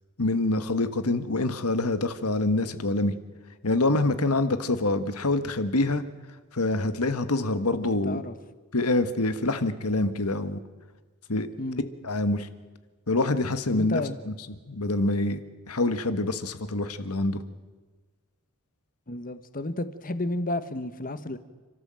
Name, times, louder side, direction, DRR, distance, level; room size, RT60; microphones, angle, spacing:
voice 1, 0.2-3.1 3.6-6.0 6.5-8.2 8.7-10.6 11.3-11.5 12.0-12.5 13.1-14.0 14.3-15.4 15.7-17.4, left 2 dB, 80° left, 11 dB, 1.5 m, -26 dB
voice 2, 8.0-8.3 11.6-11.8 13.7-14.2 19.1-21.4, left 2 dB, 40° left, 12 dB, 1.3 m, -31 dB
30.0 x 13.0 x 7.7 m, 1.3 s
head